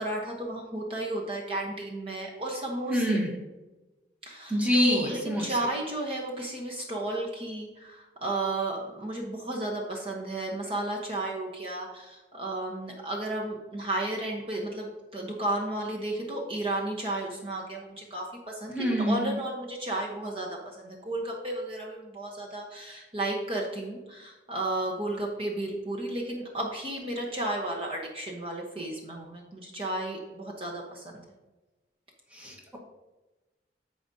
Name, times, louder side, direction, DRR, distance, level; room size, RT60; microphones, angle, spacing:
voice 1, 0.0-3.2 4.2-31.1, right 1 dB, 30° right, -1 dB, 1.0 m, -33 dB
voice 2, 2.9-3.3 4.5-5.6 18.7-19.4 32.3-32.8, equal, 10° right, -1 dB, 1.3 m, -26 dB
14.5 x 5.0 x 2.7 m, 1.1 s
head